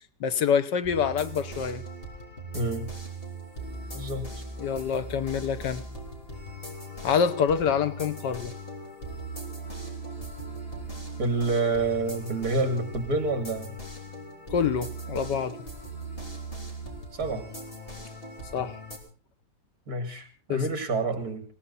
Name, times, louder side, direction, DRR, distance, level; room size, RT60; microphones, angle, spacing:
voice 1, 0.2-1.8 4.6-5.8 7.0-8.5 14.5-15.6 18.5-18.7 20.5-20.6, left 7 dB, 85° left, 11 dB, 1.7 m, -26 dB
sound 1, 0.8-19.0, right 1 dB, 30° left, 3.6 m, -39 dB
voice 2, 2.5-2.9 3.9-4.3 11.2-13.7 17.1-17.5 19.9-21.4, right 2 dB, 60° right, 9 dB, 2.9 m, -28 dB
20.5 x 17.5 x 4.1 m, 0.35 s
omnidirectional pair, 1.8 m